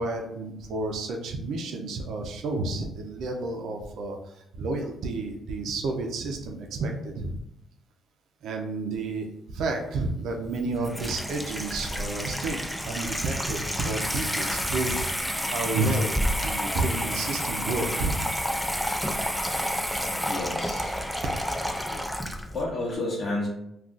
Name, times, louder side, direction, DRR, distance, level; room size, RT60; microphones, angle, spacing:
voice 1, 0.0-7.3 8.4-15.1 15.5-18.2, right 2 dB, 75° right, 2 dB, 0.5 m, -31 dB
Water tap faucet / Sink (filling or washing), 10.4-22.6, equal, ahead, 0.3 m, -30 dB
voice 2, 19.9-21.0 21.9-23.5, left 2 dB, 50° left, -4 dB, 0.8 m, -32 dB
2.4 x 2.3 x 3.7 m, 0.79 s
cardioid pair, 90°, 0 cm